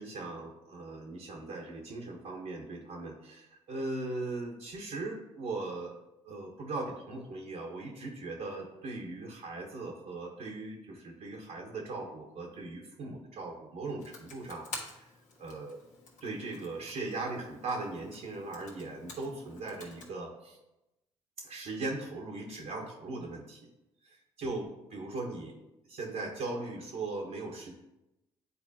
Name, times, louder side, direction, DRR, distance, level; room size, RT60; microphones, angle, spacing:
voice 1, 0.0-5.9 6.2-15.1 15.4-15.8 16.2-20.6 21.4-23.7 24.4-25.6 25.8-27.7, right 2 dB, 60° right, -1 dB, 1.2 m, -39 dB
Computer keyboard, 14.0-20.1, left 3 dB, 60° left, 1.4 m, -49 dB
9.6 x 4.1 x 2.8 m, 0.93 s
hypercardioid pair, 50°, 14 cm